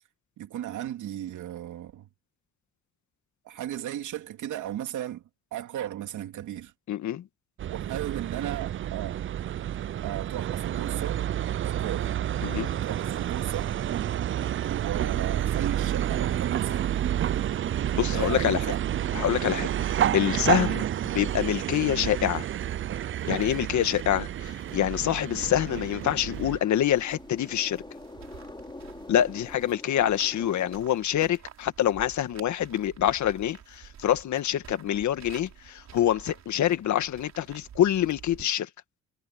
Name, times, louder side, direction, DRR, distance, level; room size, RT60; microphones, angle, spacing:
voice 1, 0.4-2.1 3.4-5.2 5.5-6.7 7.7-9.2 10.0-11.3 11.6-12.1 12.8-13.7 14.6-16.9 18.1-18.8, right 12 dB, 80° right, 2.8 m, -35 dB
voice 2, 6.9-7.3 12.4-12.7 17.9-18.7 19.1-20.8 21.1-22.5 23.2-27.8 29.1-38.7, left 11 dB, 70° left, 1.8 m, -26 dB
sound 1, 7.6-26.6, right 11 dB, 45° right, 0.5 m, -29 dB
sound 2, 21.9-38.4, right 9 dB, 60° right, 3.8 m, -49 dB
sound 3, 25.6-30.8, left 2 dB, 15° left, 3.9 m, -45 dB
cardioid pair, 90°, 30 cm